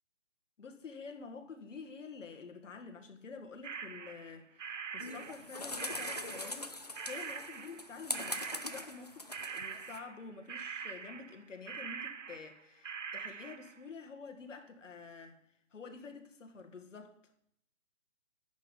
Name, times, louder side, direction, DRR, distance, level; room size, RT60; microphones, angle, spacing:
voice 1, 0.6-15.4 15.7-17.2, left 4 dB, 70° left, 1.8 m, -49 dB
sound 1, 3.6-6.7 6.9-7.9 8.1-9.1 9.3-13.8, right 6 dB, 70° right, 1.1 m, -44 dB
sound 2, 5.0-10.0, left 2 dB, 35° left, 0.4 m, -42 dB
10.5 x 8.1 x 5.4 m
hypercardioid pair, 170°, 39 cm